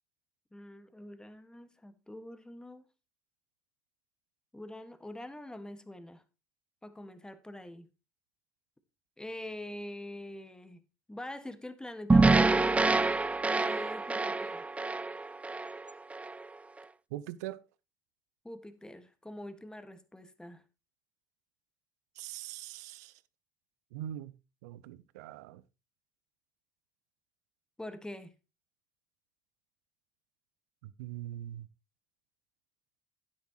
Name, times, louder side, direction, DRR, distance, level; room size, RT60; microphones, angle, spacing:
voice 1, 0.5-2.9 4.5-6.2 6.8-7.9 9.2-13.2 13.5-14.7 18.4-20.6 27.8-28.3, left 1 dB, 10° left, 1.8 m, -45 dB
sound 1, 12.1-16.4, right 3 dB, 15° right, 0.5 m, -26 dB
voice 2, 17.1-17.6 22.2-23.2 23.9-24.3 24.6-25.6 30.8-31.7, right 13 dB, 70° right, 0.7 m, -42 dB
11.5 x 10.0 x 3.1 m
figure-of-eight pair, 60°, 9 cm